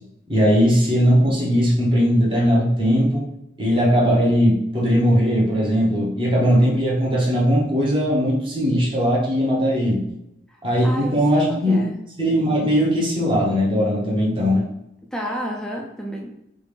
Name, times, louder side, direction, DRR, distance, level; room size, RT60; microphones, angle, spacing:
voice 1, 0.3-3.2 3.6-10.0 10.6-11.8 12.2-14.6, equal, 25° right, -5 dB, 0.9 m, -19 dB
voice 2, 10.8-12.0 15.1-16.3, equal, 5° left, -1 dB, 0.4 m, -30 dB
3.3 x 2.4 x 3.3 m, 0.82 s
head